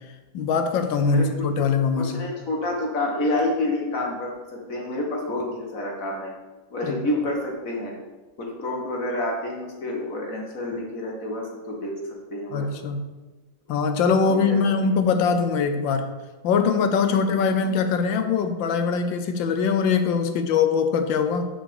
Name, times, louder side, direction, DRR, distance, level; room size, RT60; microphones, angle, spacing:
voice 1, 0.3-2.2 6.8-7.0 12.5-13.0 13.7-16.2 16.4-21.5, left 5 dB, 75° left, 8 dB, 1.4 m, -22 dB
voice 2, 2.0-6.3 6.7-7.9 8.4-11.9 12.3-12.7 14.2-14.7 17.1-17.2, left 1 dB, 45° left, -1 dB, 1.8 m, -28 dB
7.5 x 4.9 x 7.0 m, 1.2 s
omnidirectional pair, 2.1 m